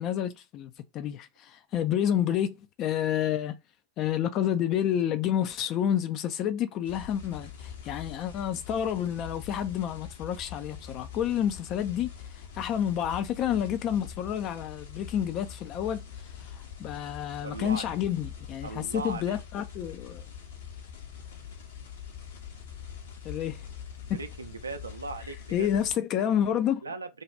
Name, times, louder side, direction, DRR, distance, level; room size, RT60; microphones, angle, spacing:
voice 1, 0.0-3.6 4.0-16.0 16.4-20.2 23.2-23.7 25.5-26.8, left 10 dB, 35° left, 0.4 m, -29 dB
sound 1, 6.8-26.0, left 8 dB, 60° left, 0.9 m, -44 dB
voice 2, 17.4-17.9 18.6-19.4 24.0-25.7 26.8-27.1, right 3 dB, 75° right, 0.5 m, -38 dB
2.6 x 2.4 x 3.2 m
figure-of-eight pair, 90°, 0 cm